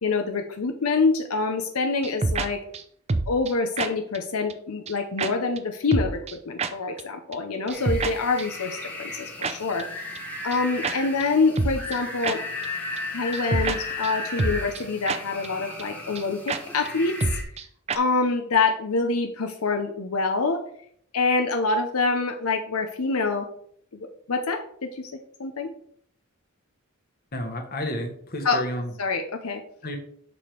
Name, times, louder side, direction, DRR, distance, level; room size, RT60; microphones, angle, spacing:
voice 1, 0.0-2.6 3.3-9.9 10.4-12.4 13.1-17.2 17.9-20.6 21.1-23.5 24.3-25.1 25.4-25.7 28.4-28.6 29.0-29.6, left 4 dB, 85° left, 5 dB, 0.7 m, -26 dB
sound 1, 2.0-2.5 2.7-2.8 3.1-3.5 3.8-3.9 4.1-4.2 4.5-4.6 4.9-5.0 5.2-5.3 5.6-5.7 5.9-6.3 6.6-6.7 7.0-7.1 7.3-7.4 7.7-8.1 8.4-8.5 9.4-9.5 9.8-9.9 10.2-10.3 10.5-10.6 10.8-11.0 11.2-11.3 11.6-12.0 12.2-12.4 12.6-12.7 13.0-13.1 13.3-13.8 14.0-14.1 14.4-14.8 15.1-15.2 15.4-15.5 15.8-15.9 16.2-16.3 16.5-16.6 16.9-17.0 17.2-17.6 17.9-18.0, right 3 dB, 30° right, 0.5 m, -26 dB
sound 2, 7.7-17.4, left 2 dB, 5° left, 1.6 m, -35 dB
voice 2, 27.3-28.9 29.8-30.0, left 1 dB, 45° left, 4 dB, 1.4 m, -31 dB
7.0 x 5.1 x 4.5 m, 0.64 s
head